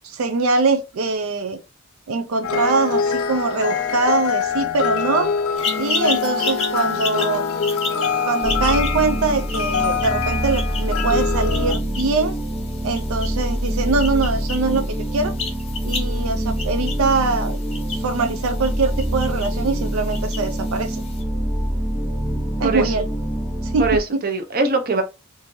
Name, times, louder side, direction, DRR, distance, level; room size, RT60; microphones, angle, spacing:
voice 1, 0.0-1.6 2.1-5.3 5.8-7.4 8.2-12.3 12.8-15.3 15.8-17.6 17.9-21.0 22.6-23.1 23.6-23.9, right 3 dB, 80° right, 0.4 m, -23 dB
sound 1, 2.4-11.7, left 6 dB, 80° left, 0.5 m, -24 dB
sound 2, 5.6-21.2, left 4 dB, 25° left, 0.7 m, -33 dB
sound 3, 8.4-24.0, equal, 5° right, 0.5 m, -25 dB
voice 2, 22.6-22.9 23.8-25.0, right 3 dB, 45° right, 0.7 m, -21 dB
3.7 x 2.6 x 3.0 m
head